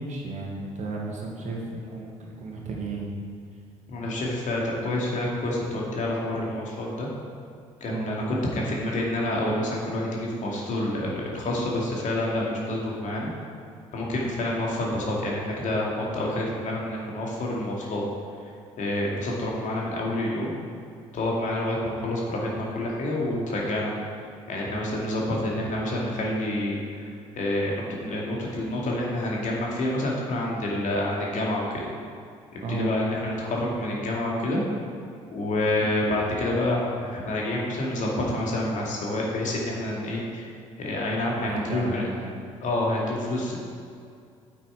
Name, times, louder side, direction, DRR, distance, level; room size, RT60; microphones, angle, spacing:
voice 1, 0.0-3.0 7.9-8.1 32.6-32.9 35.8-35.9 41.3-42.3, right 3 dB, 45° right, -2 dB, 2.2 m, -34 dB
voice 2, 3.9-7.1 7.8-13.3 13.9-18.0 18.8-20.5 21.1-23.9 24.5-27.1 27.3-31.8 32.5-34.6 35.3-40.5 40.8-42.0 42.6-43.6, left 1 dB, 50° left, -3 dB, 2.4 m, -28 dB
8.6 x 8.0 x 4.8 m, 2.3 s
figure-of-eight pair, 50°, 17 cm